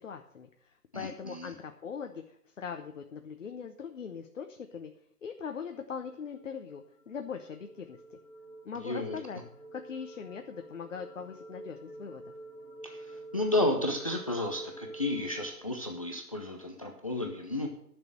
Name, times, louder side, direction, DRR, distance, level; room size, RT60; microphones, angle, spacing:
voice 1, 0.0-4.9 5.2-8.2 8.6-9.4 9.7-12.3, left 6 dB, 50° left, 6 dB, 1.0 m, -41 dB
voice 2, 0.9-1.5 8.8-9.2 12.8-17.7, left 1 dB, 25° left, 2 dB, 0.6 m, -32 dB
sound 1, 6.1-15.5, right 2 dB, 80° left, 2.0 m, -48 dB
10.5 x 6.4 x 7.6 m, 0.71 s
figure-of-eight pair, 150°, 48 cm